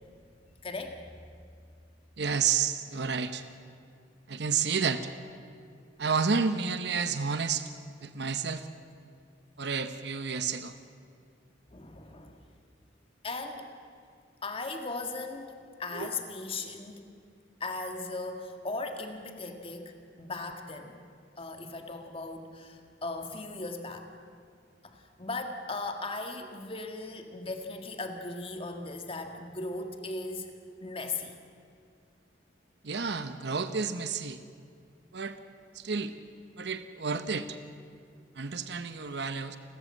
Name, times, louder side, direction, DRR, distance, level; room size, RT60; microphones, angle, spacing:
voice 1, 0.6-1.0 11.7-12.4 13.2-13.7 14.4-15.5 15.8-17.0 17.6-21.0 21.4-24.1 24.8-30.5 30.8-31.4, left 3 dB, 30° left, 5 dB, 1.9 m, -38 dB
voice 2, 2.2-3.4 4.3-5.1 6.0-7.7 8.0-8.7 9.6-10.7 15.9-16.1 32.8-34.4 35.1-35.4 35.7-36.1 36.6-37.6 38.4-39.6, right 5 dB, 65° right, 10 dB, 0.9 m, -30 dB
29.5 x 13.5 x 7.6 m, 2.3 s
head